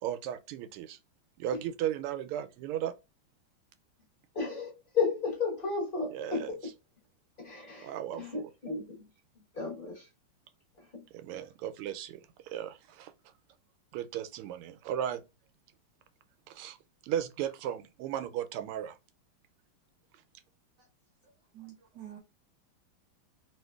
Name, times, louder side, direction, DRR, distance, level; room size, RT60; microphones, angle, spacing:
voice 1, 0.0-1.0 1.4-2.9 6.1-6.7 7.8-8.5 11.1-13.3 13.9-15.2 16.5-16.8 17.0-19.0, right 10 dB, 90° right, 1.5 m, -36 dB
voice 2, 4.3-6.6 7.4-7.9 8.2-9.0 9.5-10.1 10.9-11.0, left 5 dB, 30° left, 1.0 m, -33 dB
voice 3, 21.5-22.2, right 12 dB, 70° right, 1.0 m, -47 dB
3.3 x 2.9 x 2.3 m
omnidirectional pair, 2.4 m